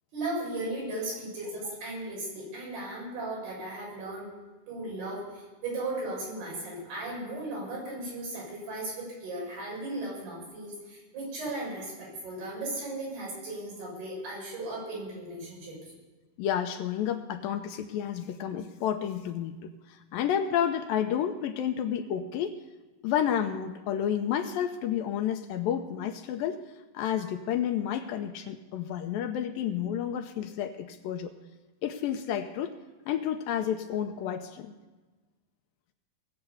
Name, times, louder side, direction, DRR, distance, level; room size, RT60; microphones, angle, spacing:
voice 1, 0.1-4.3 4.7-15.9, right 2 dB, 85° right, -4 dB, 8.7 m, -36 dB
voice 2, 16.4-19.6 19.9-22.6 23.0-26.6 26.9-31.3 31.8-32.8 33.1-34.7, left 9 dB, 80° left, 7 dB, 2.2 m, -30 dB
20.5 x 7.9 x 6.9 m, 1.2 s
omnidirectional pair, 4.5 m